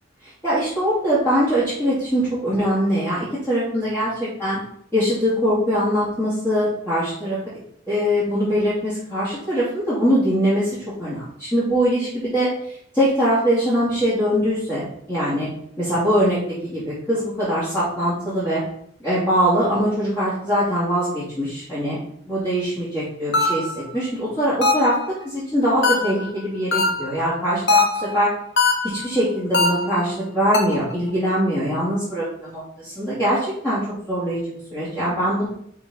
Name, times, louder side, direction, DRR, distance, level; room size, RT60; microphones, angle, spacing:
voice 1, 0.4-4.6 4.9-7.4 7.9-12.5 12.9-15.5 15.8-16.4 16.6-18.6 19.0-22.0 22.3-25.0 25.2-28.3 28.8-34.4 34.7-35.5, equal, 15° left, -12 dB, 3.1 m, -22 dB
sound 1, 23.3-23.8 24.6-25.1 25.8-26.3 26.7-27.2 27.7-28.2 28.6-29.1 29.5-30.0 30.5-30.9, left 4 dB, 60° left, 1.3 m, -20 dB
5.5 x 4.7 x 5.7 m, 0.70 s
head